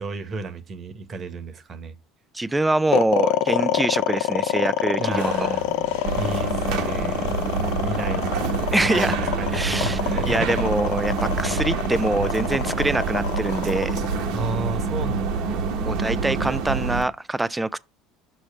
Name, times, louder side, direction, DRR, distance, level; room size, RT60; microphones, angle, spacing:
voice 1, 0.0-1.9 5.0-5.6 6.2-8.5 8.8-10.6 14.3-15.6, right 3 dB, 40° right, 1.2 m, -33 dB
voice 2, 2.3-5.5 8.7-9.2 9.5-10.0 10.3-14.0 15.5-17.8, right 2 dB, 10° right, 0.4 m, -24 dB
sound 1, 2.9-15.2, left 12 dB, 70° left, 0.4 m, -26 dB
sound 2, 5.1-14.5, left 1 dB, 90° left, 1.6 m, -41 dB
sound 3, 6.0-17.0, right 4 dB, 65° right, 1.1 m, -26 dB
6.2 x 3.3 x 5.7 m
hypercardioid pair, 70°, 0 cm